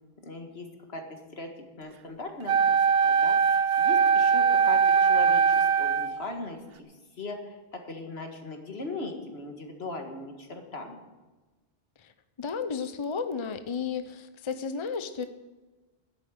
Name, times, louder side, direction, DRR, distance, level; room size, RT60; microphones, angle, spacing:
voice 1, 0.2-2.8 3.0-6.6 7.2-11.0, left 2 dB, 75° left, 4 dB, 2.0 m, -39 dB
Wind instrument woodwind instrument, 2.5-6.2, right 6 dB, 70° right, 0.9 m, -21 dB
voice 2, 12.4-15.3, left 5 dB, 35° left, 10 dB, 0.7 m, -33 dB
11.0 x 8.5 x 9.4 m, 1.2 s
omnidirectional pair, 1.1 m